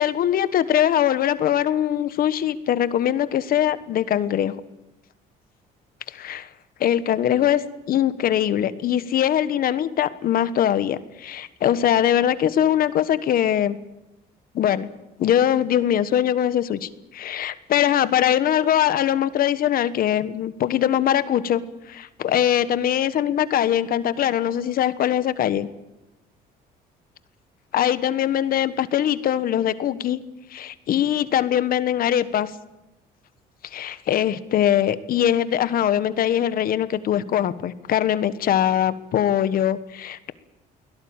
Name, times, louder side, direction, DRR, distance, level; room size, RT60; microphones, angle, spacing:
voice 1, 0.0-4.6 6.1-6.5 6.8-13.8 14.5-14.9 15.2-21.6 21.9-25.7 27.7-30.2 30.5-32.5 33.6-40.3, left 10 dB, 60° left, 14 dB, 1.3 m, -22 dB
23.5 x 17.5 x 8.9 m, 0.98 s
cardioid pair, 110°, 17 cm